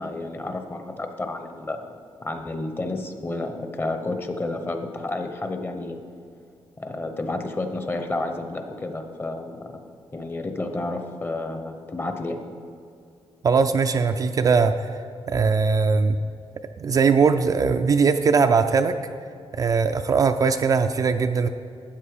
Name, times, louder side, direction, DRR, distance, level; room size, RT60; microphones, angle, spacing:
voice 1, 0.0-6.0 6.8-9.8 10.1-12.4, left 2 dB, 20° left, 6 dB, 0.8 m, -31 dB
voice 2, 13.4-15.0 15.3-16.2 16.8-19.0 19.5-21.5, right 5 dB, 40° right, 7 dB, 0.4 m, -20 dB
13.0 x 8.7 x 4.9 m, 2.4 s
wide cardioid pair, 170°, 10 cm